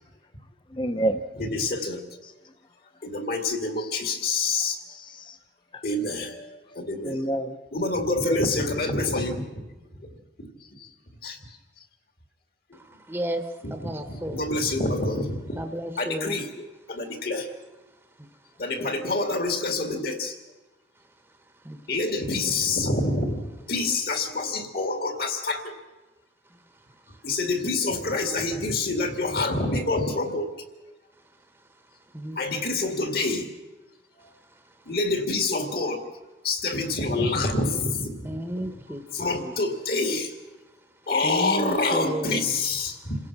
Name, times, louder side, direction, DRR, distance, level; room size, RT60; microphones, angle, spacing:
voice 1, 0.7-1.2 4.9-5.4 5.7-5.8 7.0-7.6 8.3-8.8, right 1 dB, 25° left, 8 dB, 0.8 m, -28 dB
voice 2, 1.4-2.0 3.0-4.8 5.8-7.2 7.7-9.6 10.1-10.9 11.2-11.6 12.7-12.8 13.6-15.6 16.0-17.5 18.6-20.4 21.9-25.7 27.2-30.5 32.4-33.5 34.9-36.0 36.4-38.3 38.6-38.7 39.1-40.3 41.1-43.2, left 2 dB, 55° left, 6 dB, 2.2 m, -27 dB
voice 3, 12.7-14.4 14.8-14.9 15.5-16.4 18.2-18.3 21.4-22.0 26.5-26.6 26.9-27.2 31.9-32.4 34.2-34.9 38.2-39.5 41.2-42.5 42.9-43.0, equal, 10° right, 6 dB, 1.0 m, -34 dB
27.5 x 16.5 x 6.0 m, 1.1 s
head